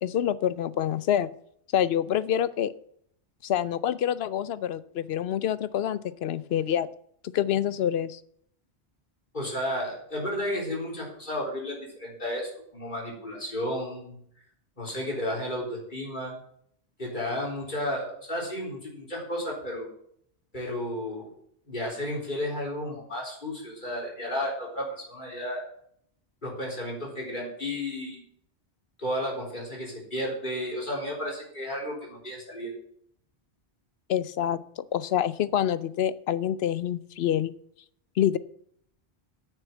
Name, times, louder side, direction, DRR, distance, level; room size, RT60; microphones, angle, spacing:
voice 1, 0.0-1.3 1.7-2.7 3.4-6.9 7.3-8.2 34.1-37.5 38.2-38.4, left 10 dB, 70° left, 17 dB, 0.8 m, -27 dB
voice 2, 9.3-14.2 14.8-16.3 17.0-19.9 20.5-21.3 21.7-25.6 26.4-28.2 29.0-32.7, left 1 dB, 45° left, -2 dB, 4.1 m, -33 dB
9.1 x 6.9 x 7.3 m, 0.66 s
omnidirectional pair, 1.1 m